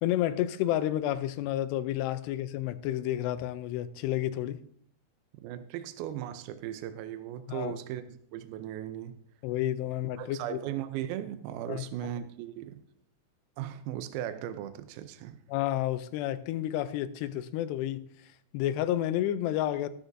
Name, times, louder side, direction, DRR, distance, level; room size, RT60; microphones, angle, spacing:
voice 1, 0.0-4.6 7.5-7.7 9.4-10.6 11.7-11.9 15.5-18.0 18.5-19.9, left 13 dB, 85° left, 2.7 m, -30 dB
voice 2, 5.4-9.2 10.2-12.8 13.6-15.4, right 11 dB, 80° right, 2.2 m, -37 dB
13.0 x 13.0 x 2.6 m
omnidirectional pair, 4.8 m